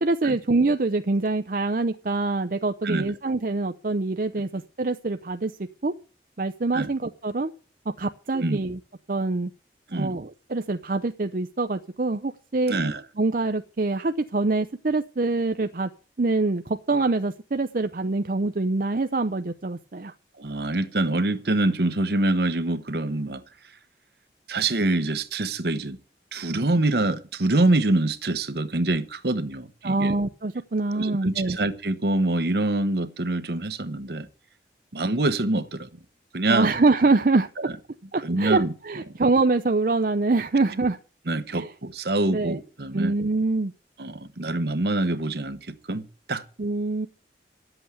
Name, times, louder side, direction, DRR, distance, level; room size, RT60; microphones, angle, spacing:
voice 1, 0.0-5.5 5.8-5.9 6.4-7.5 7.9-8.8 9.1-9.5 9.9-12.7 13.2-15.9 16.2-20.1 29.8-31.6 36.5-37.5 38.1-41.0 41.5-41.7 42.3-42.6 42.9-43.7 46.6-47.1, right 3 dB, 50° right, 0.6 m, -25 dB
voice 2, 12.7-13.0 20.4-23.4 24.5-26.0 26.3-30.1 30.9-34.3 34.9-35.9 36.3-36.7 37.6-37.7 38.2-38.7 41.3-43.1 44.0-46.0 46.3-46.4, right 2 dB, 65° right, 1.0 m, -25 dB
12.0 x 7.9 x 8.1 m
head